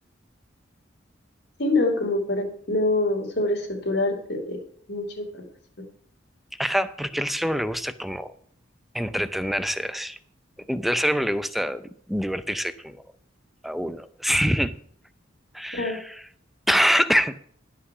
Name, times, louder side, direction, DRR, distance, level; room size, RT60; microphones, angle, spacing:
voice 1, 1.6-4.6 4.9-5.4 15.7-16.0, left 2 dB, 60° left, 3 dB, 2.7 m, -25 dB
voice 2, 6.6-8.3 8.9-10.2 10.7-13.0 13.6-14.8 15.5-16.2 16.7-17.4, equal, ahead, 13 dB, 0.5 m, -25 dB
12.0 x 5.7 x 8.0 m, 0.62 s
head